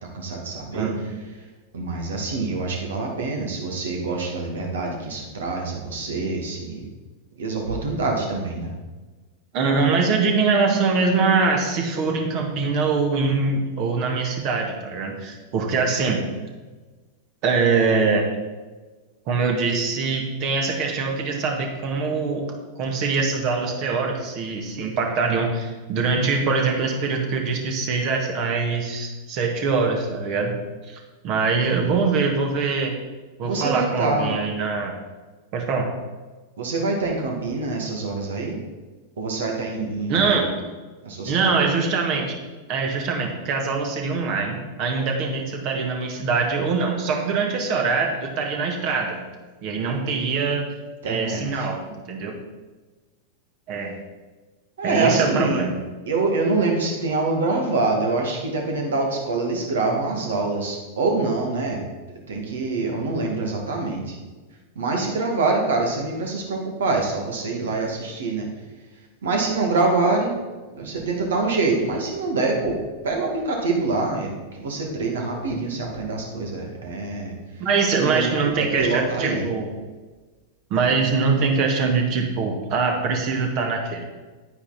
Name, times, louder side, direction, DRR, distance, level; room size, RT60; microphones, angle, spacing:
voice 1, 0.0-0.9 1.7-6.9 7.4-8.7 33.4-34.4 36.6-38.6 39.2-40.4 41.0-41.5 51.0-51.7 54.8-55.6 56.1-61.8 62.3-64.2 64.8-68.5 69.2-70.4 70.7-77.3 77.9-78.3 78.6-79.5, right 3 dB, 65° right, 1 dB, 2.4 m, -25 dB
voice 2, 0.7-1.1 9.5-16.2 17.4-18.3 19.3-22.5 22.8-30.6 30.9-32.9 33.4-35.0 35.5-35.9 40.1-40.5 41.2-42.4 42.7-49.2 49.6-50.7 51.1-52.4 53.7-53.9 54.8-55.7 77.6-79.7 80.7-84.0, right 4 dB, 40° right, 2 dB, 2.1 m, -23 dB
9.9 x 9.6 x 4.4 m, 1.3 s
figure-of-eight pair, 90°, 0 cm